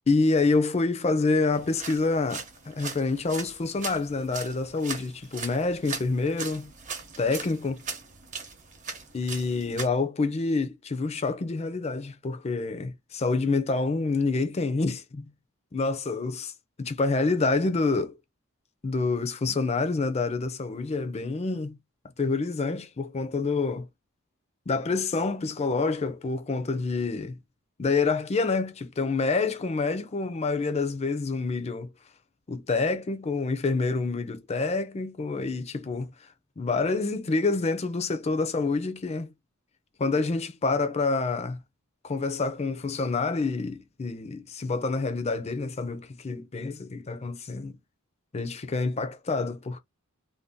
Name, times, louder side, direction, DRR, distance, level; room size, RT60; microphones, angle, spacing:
voice 1, 0.1-6.7 7.2-7.8 9.1-15.3 15.7-16.5 16.8-18.1 18.8-21.7 22.2-23.9 24.7-27.4 27.8-31.9 32.5-36.1 36.6-39.3 40.0-41.6 42.0-47.7 48.3-49.8, left 3 dB, 30° left, 0.5 m, -27 dB
sound 1, 1.5-9.9, right 5 dB, 35° right, 0.7 m, -39 dB
2.6 x 2.2 x 3.5 m
head